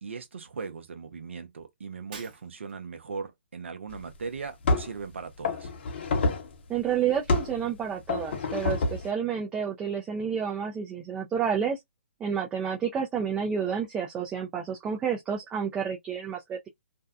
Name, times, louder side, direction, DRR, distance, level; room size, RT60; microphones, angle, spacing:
voice 1, 0.0-5.7 12.7-12.8, right 5 dB, 70° right, 0.7 m, -39 dB
Shatter, 2.1-2.9, right 5 dB, 45° right, 0.9 m, -47 dB
sound 1, 3.9-4.0 4.6-5.0 5.4-6.5 7.3-7.6 8.1-9.1, left 3 dB, 55° left, 0.8 m, -27 dB
voice 2, 6.7-11.8 12.2-16.7, right 7 dB, 15° right, 0.4 m, -30 dB
2.6 x 2.1 x 2.3 m
hypercardioid pair, 135°, 7 cm